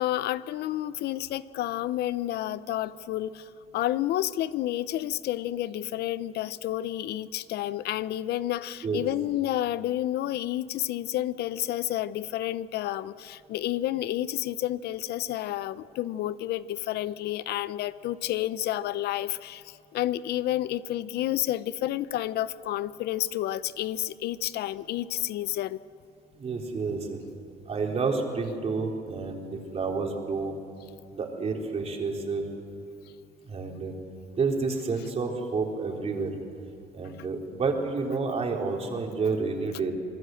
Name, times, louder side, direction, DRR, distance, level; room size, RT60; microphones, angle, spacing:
voice 1, 0.0-25.8, left 13 dB, 75° left, 16 dB, 0.7 m, -30 dB
voice 2, 26.4-27.2 27.7-30.6 31.1-32.4 33.5-33.9 34.4-36.3 36.9-39.9, right 4 dB, 40° right, 1 dB, 3.9 m, -29 dB
26.5 x 20.0 x 7.9 m, 2.4 s
cardioid pair, 110°, 17 cm